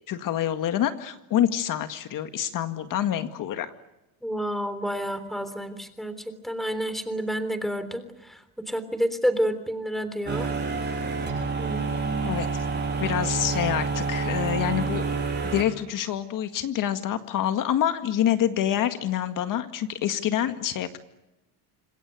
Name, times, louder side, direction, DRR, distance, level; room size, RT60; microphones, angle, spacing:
voice 1, 0.1-3.7 12.2-12.5 13.0-15.0 15.4-21.0, left 11 dB, 50° left, 8 dB, 1.9 m, -26 dB
voice 2, 4.2-10.5 11.6-12.3, equal, ahead, 12 dB, 3.4 m, -29 dB
sound 1, 10.3-15.6, right 4 dB, 25° right, 7.6 m, -28 dB
27.5 x 20.0 x 9.4 m, 0.99 s
cardioid pair, 120°, 40 cm